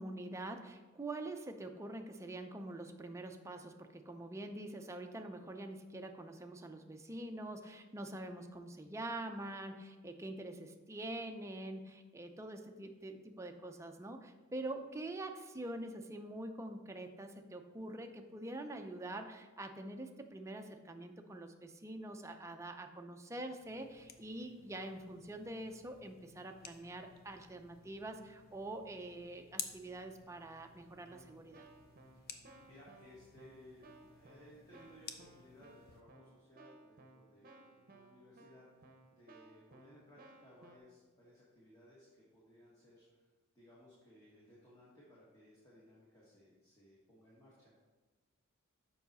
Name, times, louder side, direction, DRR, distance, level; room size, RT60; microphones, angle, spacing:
voice 1, 0.0-31.7, right 1 dB, 15° right, 5 dB, 0.5 m, -45 dB
sound 1, 23.6-36.0, left 7 dB, 45° left, 0.6 m, -53 dB
Keyboard (musical), 31.1-40.8, right 2 dB, 45° right, 0.8 m, -61 dB
voice 2, 32.3-43.3 43.5-47.8, left 1 dB, 15° left, -7 dB, 1.4 m, -61 dB
7.1 x 5.6 x 4.1 m, 1.3 s
head